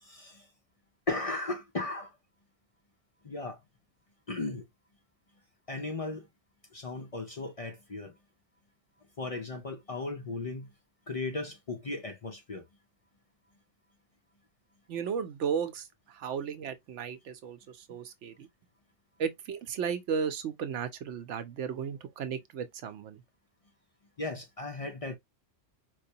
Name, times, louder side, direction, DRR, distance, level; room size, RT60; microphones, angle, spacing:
voice 1, 0.0-0.5 1.1-2.1 3.2-3.6 4.3-4.6 5.7-6.3 6.7-8.1 9.2-10.7 11.1-12.6 24.2-25.2, left 3 dB, 40° left, 0.5 m, -36 dB
voice 2, 14.9-18.5 19.2-23.2, right 7 dB, 85° right, 1.0 m, -35 dB
4.6 x 2.2 x 2.7 m
omnidirectional pair, 1.2 m